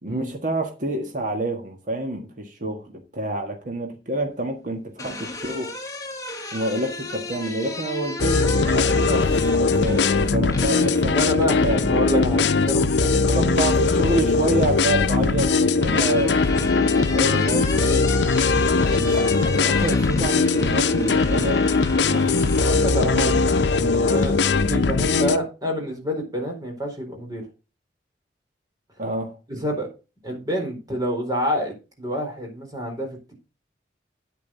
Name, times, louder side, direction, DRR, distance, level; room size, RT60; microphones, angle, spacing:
voice 1, 0.0-5.7 6.5-9.3 9.6-11.8 13.1-18.1 19.0-22.7 23.0-23.4 29.0-29.4, right 1 dB, 45° right, 4 dB, 1.5 m, -28 dB
sound 1, 4.7-11.9 13.4-14.1 15.3-23.8, left 2 dB, 20° left, 1.7 m, -34 dB
sound 2, 8.2-25.4, left 4 dB, 80° left, 0.7 m, -20 dB
voice 2, 11.1-13.6 22.1-23.4 23.7-27.4 29.5-29.9 30.2-33.3, equal, 20° right, 1 dB, 4.2 m, -28 dB
9.3 x 9.0 x 3.9 m, 0.30 s
head